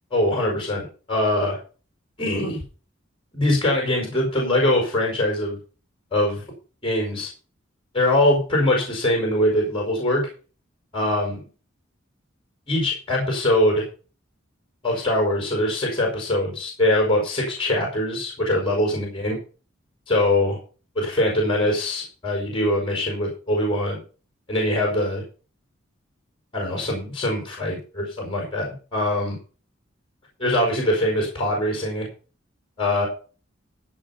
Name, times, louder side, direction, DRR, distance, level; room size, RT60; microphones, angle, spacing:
voice 1, 0.1-1.6 2.2-2.6 3.3-5.6 6.1-6.4 6.8-7.3 7.9-10.3 10.9-11.4 12.7-13.9 14.8-19.4 20.1-20.6 21.0-24.0 24.5-25.2 26.5-29.4 30.4-32.1 32.8-33.1, left 1 dB, 25° left, 0 dB, 5.2 m, -22 dB
15.0 x 5.9 x 5.8 m, 0.36 s
head